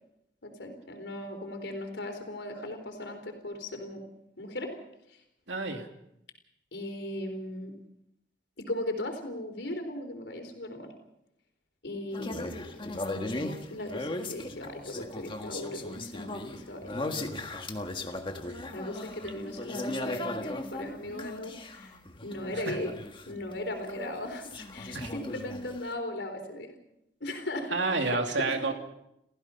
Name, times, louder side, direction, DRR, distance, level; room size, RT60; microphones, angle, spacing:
voice 1, 0.4-4.0 4.4-4.8 5.1-5.2 6.7-7.7 8.6-10.9 11.8-12.6 13.7-17.0 18.7-21.9 22.2-22.9 23.3-26.7 27.2-28.6, left 1 dB, 80° left, 5 dB, 4.0 m, -37 dB
voice 2, 5.5-5.9 22.6-22.8 24.9-25.1 27.7-28.7, right 3 dB, 85° right, 4 dB, 2.7 m, -29 dB
sound 1, 12.1-23.6 23.9-25.9, left 2 dB, 30° left, 1.6 m, -37 dB
29.5 x 15.5 x 5.7 m, 0.85 s
head